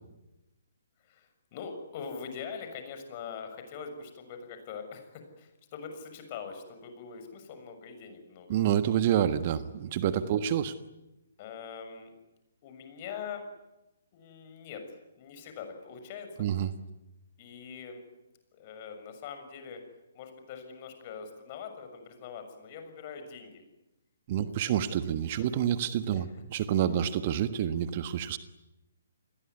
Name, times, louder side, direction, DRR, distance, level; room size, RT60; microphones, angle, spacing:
voice 1, 1.0-8.6 10.2-10.5 11.4-12.1 12.6-13.5 14.1-16.7 17.4-18.0 18.5-19.8 20.1-23.6 24.4-24.7 25.3-25.5 26.1-26.4, left 6 dB, 35° left, 7 dB, 6.6 m, -43 dB
voice 2, 8.5-10.7 16.4-16.7 24.3-28.4, right 10 dB, 40° right, 12 dB, 1.4 m, -28 dB
29.5 x 21.0 x 9.6 m, 0.97 s
figure-of-eight pair, 130°, 0 cm